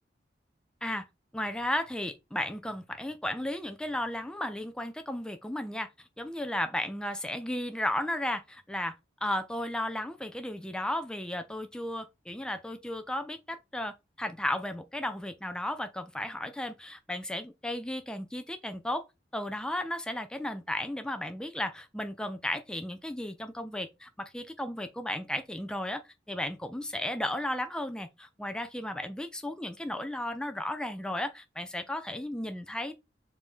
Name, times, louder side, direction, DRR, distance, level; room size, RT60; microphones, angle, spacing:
voice 1, 1.3-9.0 9.2-19.0 19.3-32.9, left 1 dB, 5° left, 0.3 m, -34 dB
4.9 x 2.7 x 3.6 m
head